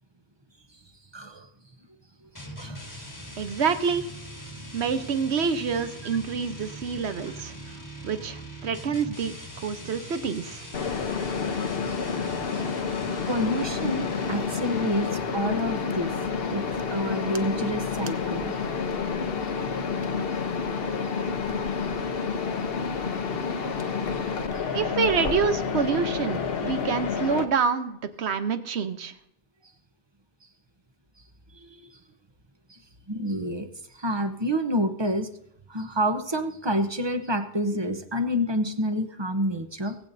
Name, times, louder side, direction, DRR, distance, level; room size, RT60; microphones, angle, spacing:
voice 1, 1.1-1.5 2.6-3.0 11.9-12.0 12.5-12.6 13.3-16.1 16.5-18.6 31.5-31.9 32.7-32.8 33.1-33.7 33.9-35.3 35.7-40.0, equal, 25° right, 8 dB, 0.8 m, -28 dB
sound 1, 2.4-15.4, equal, 20° left, 1.4 m, -41 dB
voice 2, 3.4-4.1 4.7-7.5 8.0-10.6 24.7-29.1, right 6 dB, 90° right, 10 dB, 1.1 m, -27 dB
Mechanisms, 10.7-27.4, left 5 dB, 65° left, 1.1 m, -29 dB
19.5 x 8.7 x 2.7 m, 0.76 s
omnidirectional pair, 1.1 m